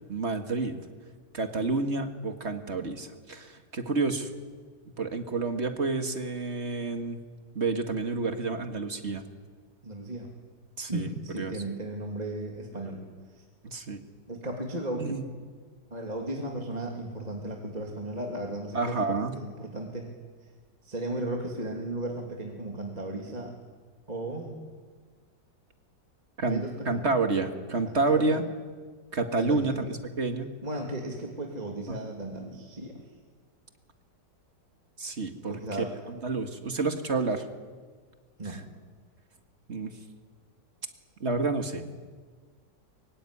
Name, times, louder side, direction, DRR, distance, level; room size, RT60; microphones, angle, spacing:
voice 1, 0.1-0.8 1.3-4.3 5.0-7.2 7.6-9.2 10.8-11.1 11.4-11.6 13.6-14.0 15.0-15.2 18.7-19.4 26.4-28.4 29.1-29.9 30.2-30.5 31.9-32.0 35.0-35.5 36.1-37.5 38.4-38.6 39.7-39.9 41.2-41.8, right 3 dB, 40° right, 6 dB, 2.0 m, -29 dB
voice 2, 9.8-10.3 10.9-13.0 13.3-13.4 14.3-15.3 15.9-20.1 20.8-23.5 24.1-24.5 26.5-27.0 28.1-28.4 29.3-29.8 30.6-32.9 35.5-36.0 38.4-38.6, right 1 dB, 20° right, 0 dB, 2.8 m, -35 dB
24.0 x 23.0 x 9.8 m, 1.5 s
omnidirectional pair, 2.0 m